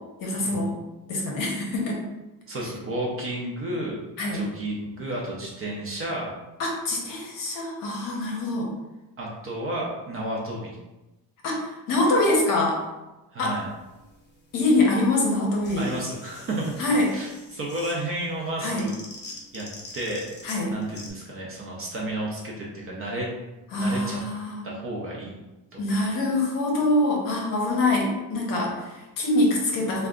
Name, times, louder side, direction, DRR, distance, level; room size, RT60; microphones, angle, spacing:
voice 1, 0.2-0.8 1.1-2.0 4.2-4.4 6.6-8.7 11.4-12.8 13.4-13.6 14.5-15.9 16.8-17.1 18.6-18.8 20.4-20.7 23.7-24.6 25.8-30.1, left 2 dB, 50° left, -1 dB, 0.9 m, -24 dB
voice 2, 2.5-4.0 4.3-6.3 9.2-10.8 13.3-13.7 15.8-16.7 17.1-18.9 19.5-20.3 20.7-23.3 23.8-24.2 24.6-25.4 25.7-26.2, right 1 dB, 30° right, -3 dB, 0.5 m, -32 dB
sound 1, 13.5-21.1, left 2 dB, 25° left, 0.5 m, -45 dB
3.6 x 2.2 x 3.6 m, 1.0 s
cardioid pair, 170°, 44 cm